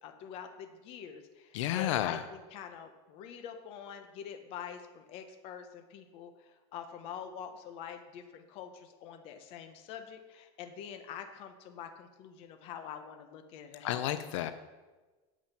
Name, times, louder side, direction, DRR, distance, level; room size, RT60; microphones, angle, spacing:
voice 1, 0.0-2.2 2.5-6.3 6.7-14.1 14.4-14.5, left 8 dB, 40° left, 7 dB, 0.9 m, -45 dB
voice 2, 1.5-2.3 13.8-14.5, left 12 dB, 85° left, 11 dB, 0.7 m, -31 dB
9.0 x 7.4 x 5.8 m, 1.2 s
supercardioid pair, 175°, 15 cm